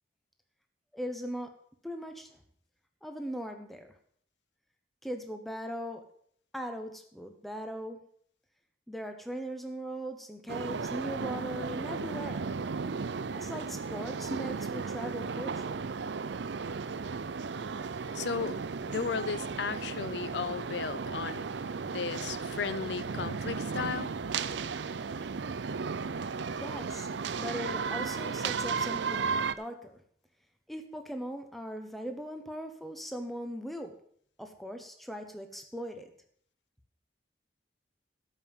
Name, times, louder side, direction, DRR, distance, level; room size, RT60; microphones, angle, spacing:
voice 1, 0.9-1.5 1.8-2.3 3.0-3.9 5.0-6.0 6.5-8.0 8.9-12.5 13.3-15.8 26.5-27.1 27.4-30.0 30.7-33.9 34.4-36.1, equal, ahead, 5 dB, 1.2 m, -39 dB
sound 1, 10.5-29.5, right 5 dB, 75° right, 0.5 m, -35 dB
voice 2, 18.1-21.5 21.9-24.1, left 5 dB, 70° left, 15 dB, 0.5 m, -35 dB
13.0 x 5.7 x 7.2 m, 0.62 s
head